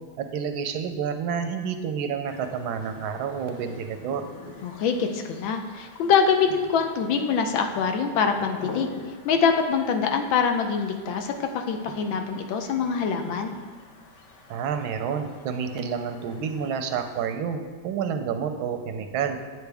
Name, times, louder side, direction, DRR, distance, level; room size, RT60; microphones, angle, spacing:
voice 1, 0.2-4.3 14.5-19.4, right 7 dB, 90° right, 7 dB, 1.5 m, -29 dB
sound 1, 2.3-17.3, left 3 dB, 50° left, 0.9 m, -46 dB
voice 2, 4.6-8.9 9.2-13.5, left 6 dB, 75° left, 5 dB, 1.4 m, -24 dB
8.9 x 8.0 x 3.4 m, 1.5 s
omnidirectional pair, 2.2 m